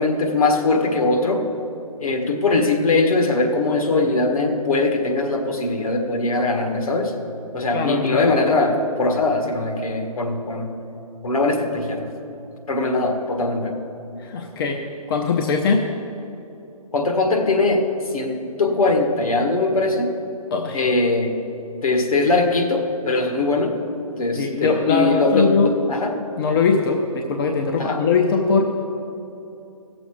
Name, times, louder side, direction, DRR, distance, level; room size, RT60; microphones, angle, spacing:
voice 1, 0.0-1.4 2.0-7.1 7.5-10.7 11.2-12.1 12.7-13.8 16.9-17.8 18.1-20.1 20.7-21.4 21.8-23.7 24.2-26.1 27.8-28.0, left 2 dB, 65° left, 3 dB, 1.7 m, -21 dB
voice 2, 7.7-8.3 14.2-15.9 20.5-20.8 24.4-25.7 26.4-28.6, left 4 dB, 35° left, 2 dB, 0.7 m, -21 dB
16.0 x 7.0 x 5.0 m, 2.9 s
figure-of-eight pair, 140°, 19 cm